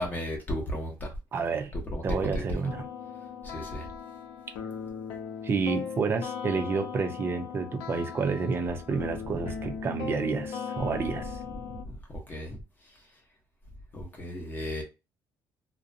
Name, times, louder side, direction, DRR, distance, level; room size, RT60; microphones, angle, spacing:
voice 1, 0.0-1.1 1.7-2.0 2.3-2.4 3.4-3.9 10.8-11.3 11.6-12.9 13.9-14.8, equal, 25° left, 0.8 m, -35 dB
voice 2, 1.3-1.7 2.0-2.9 5.4-11.4, right 5 dB, 30° right, 0.5 m, -29 dB
sound 1, 2.7-11.8, left 6 dB, 90° left, 0.7 m, -38 dB
2.7 x 2.1 x 2.5 m
cardioid pair, 145°, 8 cm